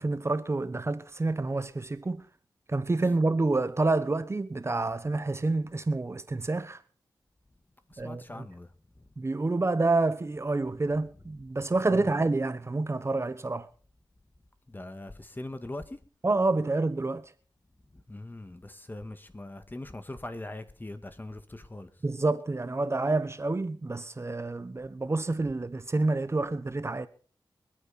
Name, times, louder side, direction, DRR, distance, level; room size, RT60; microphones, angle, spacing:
voice 1, 0.0-2.2 2.7-6.8 8.0-8.5 9.2-13.7 16.2-17.2 22.0-27.1, right 3 dB, 35° right, 1.0 m, -28 dB
voice 2, 7.9-8.7 11.9-12.1 14.7-16.0 17.9-21.9, left 2 dB, 25° left, 1.9 m, -41 dB
25.5 x 8.8 x 4.3 m
cardioid pair, 60°, 8 cm